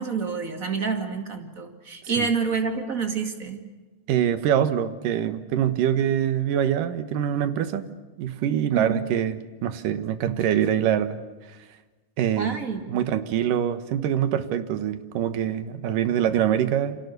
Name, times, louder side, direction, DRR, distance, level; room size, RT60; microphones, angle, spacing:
voice 1, 0.0-3.6 8.7-9.0 12.4-13.0, right 5 dB, 30° right, 5 dB, 2.3 m, -28 dB
voice 2, 4.1-7.8 8.2-11.2 11.5-11.6 12.2-12.6 12.9-17.0, right 10 dB, 85° right, 11 dB, 2.9 m, -24 dB
28.5 x 26.0 x 6.8 m, 1.2 s
omnidirectional pair, 3.7 m